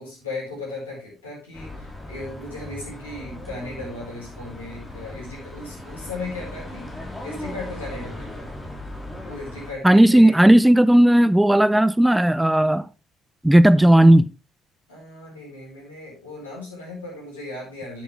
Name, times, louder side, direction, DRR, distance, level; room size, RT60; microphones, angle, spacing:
voice 1, 0.0-6.9 7.2-8.5 9.2-10.4 14.9-18.0, left 2 dB, 80° left, 4.8 m, -36 dB
sound 1, 1.5-9.7, left 1 dB, 15° left, 4.1 m, -37 dB
voice 2, 9.8-12.9 13.4-14.3, right 1 dB, 5° right, 0.5 m, -14 dB
10.0 x 8.5 x 3.4 m
figure-of-eight pair, 50°, 0 cm